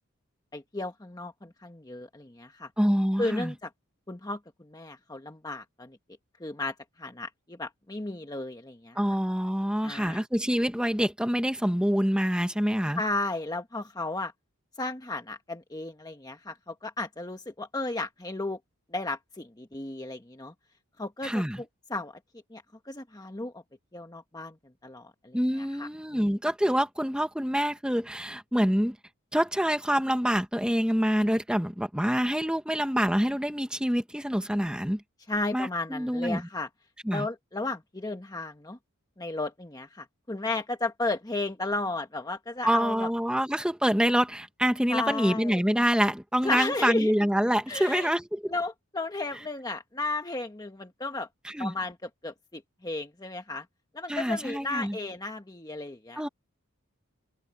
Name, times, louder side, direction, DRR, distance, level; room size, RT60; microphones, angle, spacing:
voice 1, 0.5-2.7 3.2-3.7 4.1-6.0 6.4-9.0 9.8-10.2 13.0-14.3 14.8-18.6 18.9-20.5 21.0-22.2 22.5-23.6 23.9-24.6 24.8-26.3 35.3-36.7 37.1-38.8 39.2-43.1 44.9-45.6 46.4-47.1 47.7-48.1 48.5-51.3 51.6-53.6 53.9-56.2, left 2 dB, 20° left, 1.2 m, -34 dB
voice 2, 2.8-3.5 8.9-13.0 21.2-21.6 25.3-28.9 29.3-35.0 35.5-36.4 37.0-37.3 42.6-48.5 51.4-51.7 54.1-55.0 56.2-56.3, equal, 5° right, 1.5 m, -26 dB
head